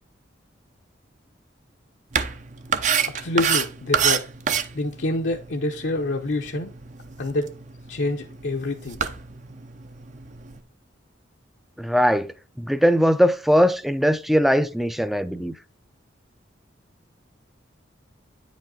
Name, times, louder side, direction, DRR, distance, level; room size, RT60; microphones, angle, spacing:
sound 1, 2.1-10.6, right 7 dB, 40° right, 0.6 m, -29 dB
voice 1, 3.2-4.3 4.7-6.7 7.2-7.5 7.9-9.0, left 2 dB, 70° left, 0.8 m, -26 dB
voice 2, 11.8-12.3 12.6-15.6, equal, ahead, 0.4 m, -20 dB
9.6 x 5.1 x 3.8 m
head